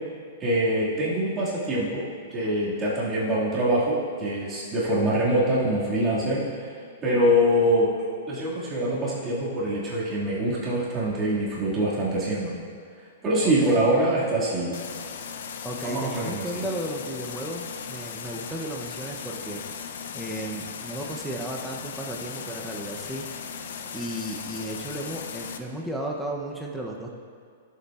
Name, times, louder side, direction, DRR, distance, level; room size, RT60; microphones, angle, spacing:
voice 1, 0.4-2.0 2.3-6.7 7.0-7.9 8.3-12.6 13.2-14.7 15.8-16.6, right 1 dB, 20° right, -8 dB, 1.9 m, -24 dB
voice 2, 13.4-13.8 15.6-19.6 20.1-23.3 23.9-27.1, right 1 dB, 5° right, -1 dB, 0.6 m, -34 dB
sound 1, 14.7-25.6, left 7 dB, 70° left, 0.5 m, -37 dB
12.5 x 6.8 x 2.4 m, 2.2 s
hypercardioid pair, 160°, 0 cm